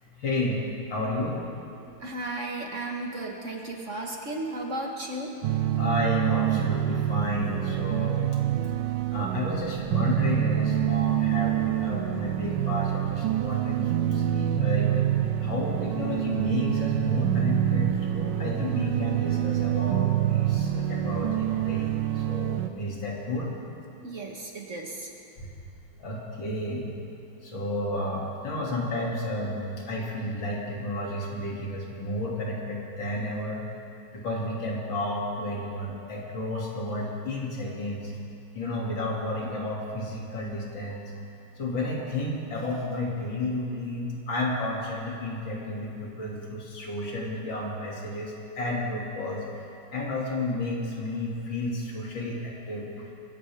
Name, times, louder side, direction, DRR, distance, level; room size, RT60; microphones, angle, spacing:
voice 1, 0.2-1.4 5.8-8.3 9.1-15.1 15.4-23.5 25.4-25.5 26.0-26.9 27.4-33.6 34.1-38.1 38.5-41.1 41.6-53.1, left 1 dB, 75° left, -3 dB, 3.3 m, -32 dB
voice 2, 2.0-5.3 24.0-25.1, right 2 dB, 45° right, 0 dB, 1.5 m, -34 dB
sound 1, 5.4-22.7, right 12 dB, 75° right, 1.3 m, -26 dB
24.5 x 14.5 x 3.5 m, 2.6 s
omnidirectional pair, 2.1 m